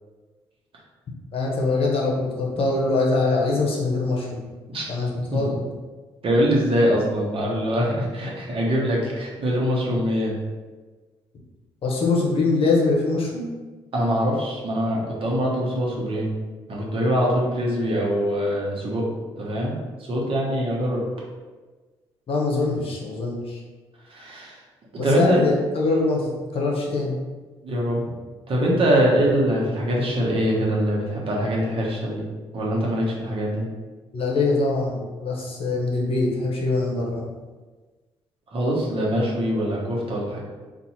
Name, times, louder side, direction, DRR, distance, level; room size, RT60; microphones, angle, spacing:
voice 1, 1.3-4.4 4.9-5.6 11.8-13.4 22.3-23.6 25.0-27.2 34.1-37.3, left 3 dB, 55° left, -2 dB, 1.0 m, -23 dB
voice 2, 6.2-10.3 13.9-16.3 16.7-19.1 19.4-19.7 20.1-21.0 24.1-24.6 25.0-25.5 27.6-28.0 28.5-32.2 32.5-33.7 38.5-40.4, equal, 50° right, -3 dB, 1.1 m, -23 dB
2.8 x 2.6 x 4.1 m, 1.3 s
supercardioid pair, 55°, 12 cm